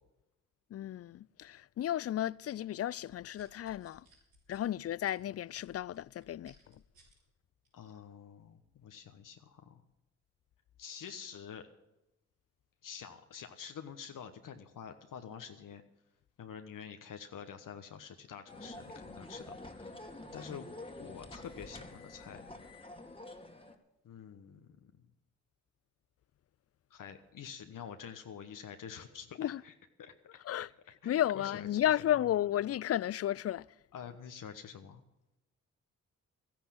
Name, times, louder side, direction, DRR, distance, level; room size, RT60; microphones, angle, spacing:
voice 1, 0.7-4.0 4.5-6.8 29.4-29.6 30.5-30.7 31.1-33.7, left 12 dB, 45° left, 0.4 m, -33 dB
sound 1, 2.9-7.2 7.6-7.9, right 1 dB, 90° right, 5.9 m, -64 dB
voice 2, 7.7-9.8 10.8-11.7 12.8-15.8 16.4-20.0 20.3-22.5 24.0-24.9 26.9-29.7 30.0-30.4 31.0-31.8 33.9-35.0, left 7 dB, 65° left, 1.2 m, -47 dB
sound 2, 18.5-23.8, left 2 dB, 15° left, 2.1 m, -48 dB
13.5 x 10.5 x 7.6 m
hypercardioid pair, 40°, 34 cm